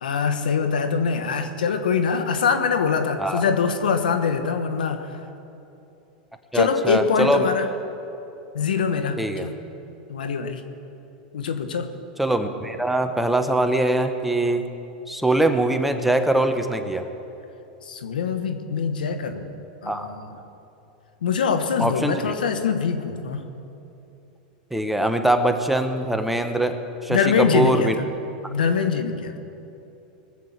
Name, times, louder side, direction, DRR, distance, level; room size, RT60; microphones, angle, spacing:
voice 1, 0.0-5.1 6.5-7.7 8.5-9.6 10.1-10.6 11.3-11.9 17.8-19.5 19.8-20.3 21.2-23.5 27.1-27.9 28.5-29.3, left 6 dB, 85° left, 8 dB, 1.1 m, -23 dB
voice 2, 6.5-7.5 9.2-9.5 12.2-14.6 15.1-17.1 19.9-20.1 21.8-22.3 24.7-27.9, right 1 dB, 5° right, 7 dB, 1.0 m, -22 dB
20.0 x 7.6 x 7.4 m, 2.9 s
hypercardioid pair, 110°, 5 cm